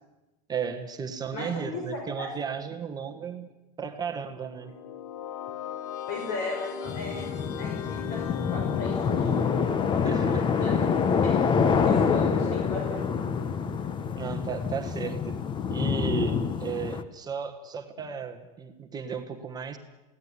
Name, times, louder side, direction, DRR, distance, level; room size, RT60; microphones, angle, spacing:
voice 1, 0.5-3.5 3.8-4.7 10.0-10.5 14.2-15.4 15.7-19.8, right 6 dB, 20° right, 5 dB, 1.5 m, -34 dB
voice 2, 1.3-1.8 2.2-2.3 6.1-9.4 10.1-10.7 11.8-13.0, left 3 dB, 50° left, 1 dB, 5.8 m, -36 dB
sound 1, 4.4-15.3, left 8 dB, 75° left, 1.4 m, -38 dB
sound 2, 6.9-17.0, left 6 dB, 25° left, 1.1 m, -26 dB
23.5 x 17.0 x 9.8 m, 1.1 s
supercardioid pair, 140°, 20 cm